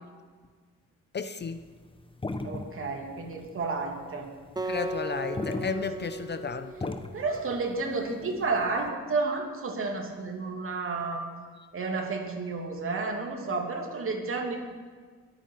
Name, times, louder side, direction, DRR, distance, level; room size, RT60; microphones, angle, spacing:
voice 1, 1.1-1.6 4.6-7.0, left 5 dB, 35° left, 10 dB, 0.7 m, -33 dB
sound 1, 1.4-8.9, left 2 dB, 15° left, 1.0 m, -38 dB
voice 2, 2.4-4.3 7.1-11.2 11.7-14.6, right 3 dB, 45° right, 2 dB, 2.6 m, -31 dB
Acoustic guitar, 4.6-7.8, right 2 dB, 15° right, 0.7 m, -37 dB
22.0 x 9.1 x 4.7 m, 1.6 s
cardioid pair, 90°, 30 cm